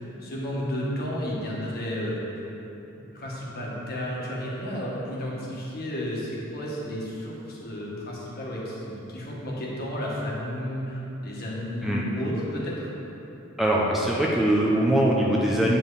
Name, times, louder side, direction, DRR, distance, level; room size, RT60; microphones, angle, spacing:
voice 1, 0.0-2.4 3.0-12.9, equal, 50° left, -4 dB, 1.5 m, -32 dB
voice 2, 13.6-15.8, right 1 dB, ahead, -5 dB, 0.6 m, -22 dB
8.7 x 5.4 x 4.0 m, 3.0 s
head